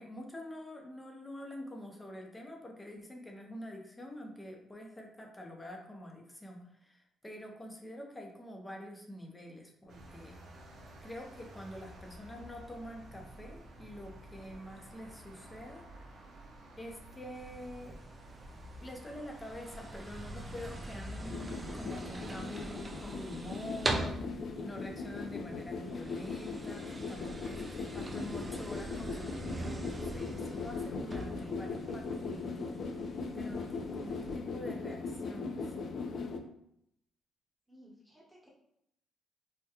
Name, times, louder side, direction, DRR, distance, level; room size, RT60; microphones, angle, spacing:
voice 1, 0.0-10.4 11.0-15.8 16.8-18.0 18.8-32.8 33.3-35.7, left 1 dB, 15° left, 1 dB, 0.6 m, -46 dB
sound 1, 9.9-23.9, right 1 dB, 65° right, 0.6 m, -52 dB
sound 2, 17.3-34.4, right 2 dB, 25° right, 0.4 m, -43 dB
sound 3, 21.2-36.4, left 4 dB, 60° left, 0.4 m, -39 dB
voice 2, 37.7-38.5, equal, 5° right, -4 dB, 1.0 m, -58 dB
3.5 x 2.2 x 2.8 m, 0.76 s
cardioid pair, 90°, 0 cm